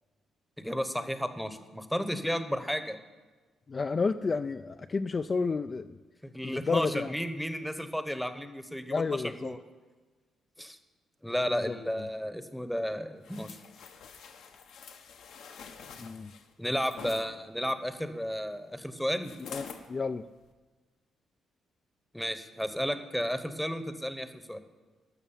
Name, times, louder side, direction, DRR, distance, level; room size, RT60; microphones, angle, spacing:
voice 1, 0.6-3.0 6.2-9.6 10.6-10.8 11.2-13.6 16.6-19.3 22.1-24.6, equal, ahead, 10 dB, 0.9 m, -33 dB
voice 2, 3.7-6.0 6.4-7.1 8.9-9.6 11.5-12.1 16.0-16.3 19.5-20.3, left 4 dB, 35° left, 9 dB, 0.3 m, -31 dB
sound 1, 13.2-17.2 19.2-19.9 20.4-20.5, left 6 dB, 80° left, 1.1 m, -46 dB
12.5 x 6.2 x 7.2 m, 1.3 s
cardioid pair, 90°, 0 cm